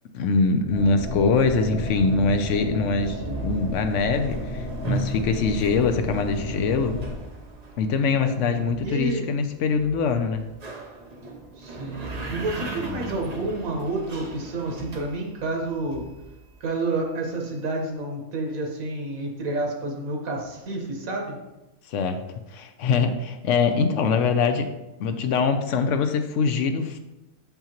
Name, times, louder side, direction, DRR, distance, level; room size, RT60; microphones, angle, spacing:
voice 1, 0.1-3.2 3.4-7.0 7.8-10.4 21.9-22.2 22.5-24.7 25.0-27.0, left 4 dB, 70° left, 7 dB, 0.9 m, -23 dB
sound 1, 0.7-7.2, left 1 dB, 55° left, 1.6 m, -33 dB
sound 2, 1.2-16.7, right 2 dB, 40° right, 0.6 m, -38 dB
voice 2, 3.1-3.6 8.2-9.3 11.6-16.0 16.6-21.4, right 2 dB, 80° right, 1 dB, 1.6 m, -30 dB
6.9 x 5.6 x 3.0 m, 0.98 s
omnidirectional pair, 1.4 m